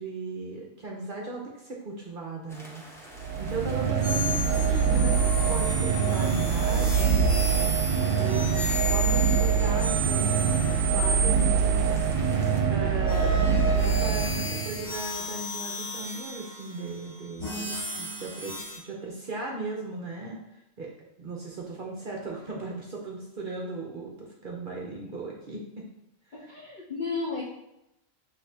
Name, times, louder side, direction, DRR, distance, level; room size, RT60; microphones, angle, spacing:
voice 1, 0.0-2.8 3.4-7.1 8.2-12.4 12.7-20.4 20.8-20.9 21.2-25.8 26.4-26.5, right 3 dB, 50° right, -2 dB, 0.7 m, -37 dB
sound 1, 2.5-12.6, equal, 5° left, 0.5 m, -46 dB
sound 2, 3.2-15.0, right 6 dB, 75° right, 0.9 m, -24 dB
sound 3, 4.0-12.3 13.0-18.8, equal, 35° left, 1.8 m, -33 dB
voice 2, 26.3-27.5, left 4 dB, 50° left, -3 dB, 0.6 m, -33 dB
6.2 x 2.7 x 2.7 m, 0.87 s
omnidirectional pair, 1.4 m